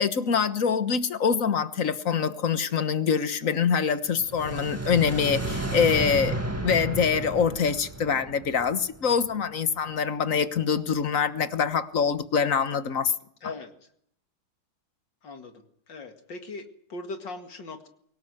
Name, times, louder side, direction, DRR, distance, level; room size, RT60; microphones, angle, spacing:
voice 1, 0.0-6.4 6.6-13.1, left 6 dB, 45° left, 12 dB, 1.5 m, -25 dB
sound 1, 4.1-9.3, right 2 dB, 10° right, 1.6 m, -32 dB
voice 2, 13.4-13.7 15.2-15.5 15.9-17.9, left 3 dB, 60° left, 7 dB, 2.6 m, -39 dB
24.0 x 18.0 x 8.0 m, 0.67 s
omnidirectional pair, 2.2 m